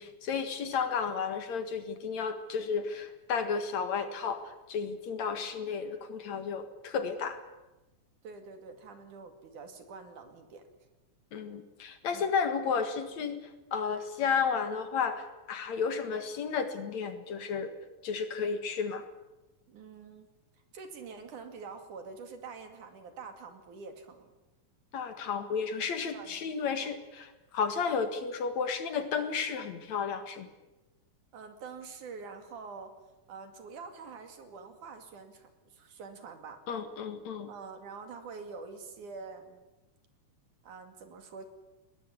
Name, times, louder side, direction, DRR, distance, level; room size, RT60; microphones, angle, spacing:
voice 1, 0.0-7.4 11.3-17.7 18.0-19.0 24.9-30.5 36.7-37.5, left 6 dB, 65° left, 9 dB, 3.0 m, -32 dB
voice 2, 8.2-10.6 12.1-12.3 19.7-20.3 20.7-24.3 25.8-26.9 31.3-32.9 33.3-36.6 37.5-39.6 40.6-41.5, right 5 dB, 80° right, 7 dB, 3.9 m, -46 dB
20.5 x 20.0 x 9.7 m, 1.1 s
omnidirectional pair, 3.5 m